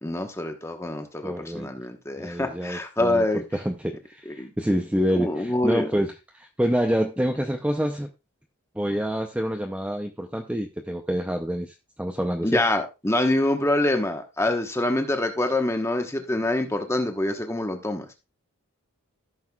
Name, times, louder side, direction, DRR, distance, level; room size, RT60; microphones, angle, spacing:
voice 1, 0.0-3.4 4.4-4.5 5.1-5.9 12.4-18.0, left 1 dB, 10° left, 5 dB, 1.1 m, -25 dB
voice 2, 1.2-1.7 2.2-3.2 3.5-8.1 8.8-12.6, equal, 5° right, 3 dB, 0.5 m, -27 dB
14.5 x 6.4 x 2.3 m, 0.25 s
head